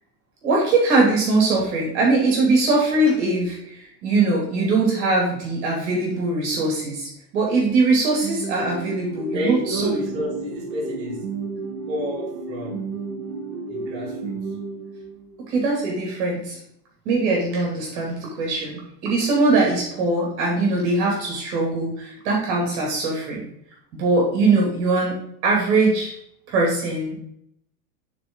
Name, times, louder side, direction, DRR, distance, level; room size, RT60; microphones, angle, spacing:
voice 1, 0.4-9.9 15.5-16.6 17.1-23.4 23.9-25.1 25.4-26.1 26.5-27.2, right 3 dB, 40° right, -2 dB, 2.4 m, -21 dB
sound 1, 8.2-15.4, right 4 dB, 60° right, 1.5 m, -32 dB
voice 2, 9.3-11.3 11.9-12.9 13.7-14.4, right 1 dB, 20° right, -7 dB, 2.5 m, -29 dB
11.0 x 4.0 x 3.7 m, 0.74 s
supercardioid pair, 175°, 50 cm